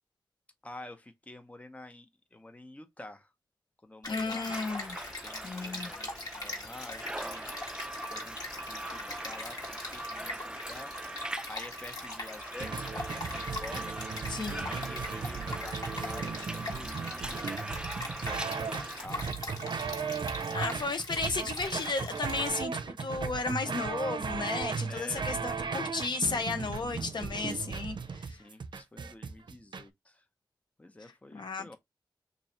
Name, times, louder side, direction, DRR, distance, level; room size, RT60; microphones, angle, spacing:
voice 1, 0.6-3.3 3.8-4.5 5.2-7.5 8.1-14.0 14.6-17.5 18.2-20.8 24.9-25.7 28.3-30.2 30.8-31.8, left 2 dB, 15° left, 0.8 m, -49 dB
Stream, 4.0-22.5, left 2 dB, 50° left, 1.6 m, -42 dB
voice 2, 4.1-5.0 5.4-5.9 14.3-14.7 20.5-28.4 31.3-31.8, left 3 dB, 75° left, 0.8 m, -34 dB
sound 1, 4.3-19.1, right 1 dB, 10° right, 0.4 m, -41 dB
sound 2, 12.6-29.8, right 5 dB, 75° right, 0.5 m, -36 dB
3.0 x 2.6 x 4.2 m
wide cardioid pair, 90°, 8 cm